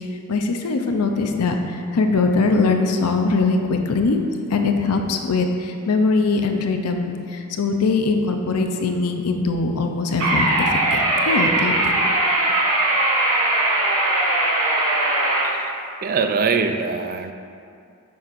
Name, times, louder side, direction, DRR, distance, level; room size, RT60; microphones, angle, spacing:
voice 1, 0.3-4.2 4.5-12.0, left 3 dB, 90° left, 4 dB, 0.6 m, -21 dB
sound 1, 10.2-15.4, right 2 dB, 80° right, 1.0 m, -20 dB
voice 2, 16.0-17.3, right 5 dB, 40° right, 7 dB, 0.3 m, -23 dB
6.9 x 6.3 x 2.5 m, 2.4 s
head